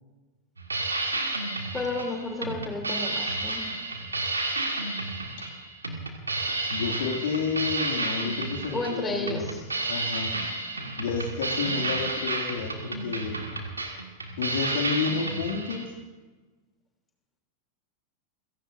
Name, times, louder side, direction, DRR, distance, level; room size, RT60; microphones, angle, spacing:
sound 1, 0.6-15.8, right 2 dB, 80° right, 1.8 m, -31 dB
voice 1, 1.7-3.6 8.7-9.4, left 2 dB, 15° left, 1 dB, 3.1 m, -31 dB
voice 2, 6.7-9.5 9.9-10.3 11.0-13.4 14.4-15.9, left 5 dB, 60° left, 2 dB, 2.3 m, -30 dB
28.5 x 16.5 x 2.6 m, 1.3 s
figure-of-eight pair, 90°, 0 cm